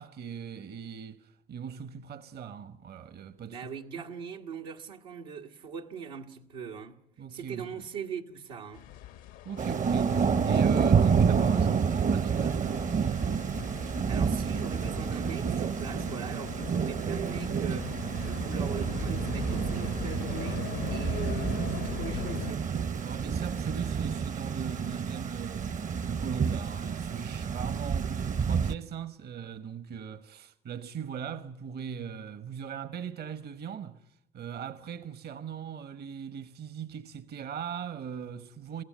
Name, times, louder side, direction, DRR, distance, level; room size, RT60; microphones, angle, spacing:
voice 1, 0.0-3.6 7.2-7.8 9.4-12.8 23.0-34.0 34.3-38.8, right 7 dB, 55° right, 1.1 m, -39 dB
voice 2, 3.4-7.0 7.3-8.9 13.6-18.0 18.2-22.7, right 6 dB, 90° right, 1.4 m, -41 dB
sound 1, 8.7-22.5, left 12 dB, 80° left, 0.9 m, -41 dB
Thunder / Rain, 9.6-28.7, right 6 dB, 40° right, 0.8 m, -29 dB
22.5 x 16.5 x 9.2 m
hypercardioid pair, 60°, 19 cm